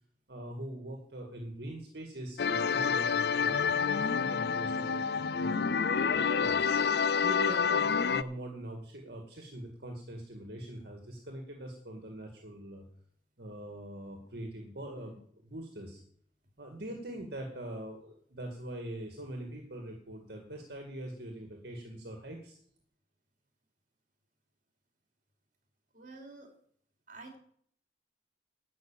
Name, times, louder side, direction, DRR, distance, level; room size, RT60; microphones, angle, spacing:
voice 1, 0.3-6.7 7.2-12.8 13.4-16.0 16.6-22.6, right 1 dB, 65° right, 2 dB, 2.0 m, -43 dB
sound 1, 2.4-8.2, left 6 dB, 65° left, 0.4 m, -28 dB
voice 2, 25.9-26.5 27.1-27.4, right 3 dB, 50° right, 3 dB, 3.1 m, -49 dB
12.0 x 6.2 x 8.9 m, 0.63 s
head